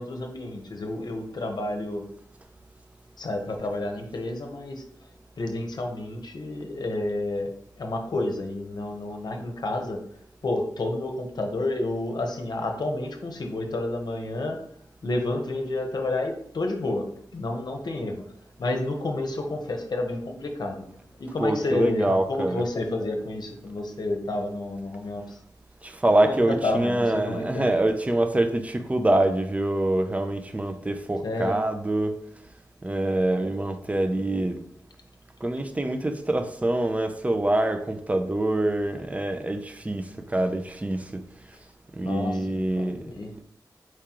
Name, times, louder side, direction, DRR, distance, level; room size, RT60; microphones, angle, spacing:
voice 1, 0.0-2.0 3.2-4.8 5.4-10.0 10.4-14.6 15.0-17.1 17.3-18.2 18.6-20.8 21.2-25.4 26.2-27.7 31.2-31.6 42.0-43.3, left 2 dB, 65° left, 0.8 m, -30 dB
voice 2, 21.4-22.6 25.8-32.2 32.8-34.6 35.4-41.2 41.9-43.1, right 1 dB, 20° right, 0.4 m, -25 dB
4.7 x 3.6 x 2.9 m
wide cardioid pair, 110°, 8 cm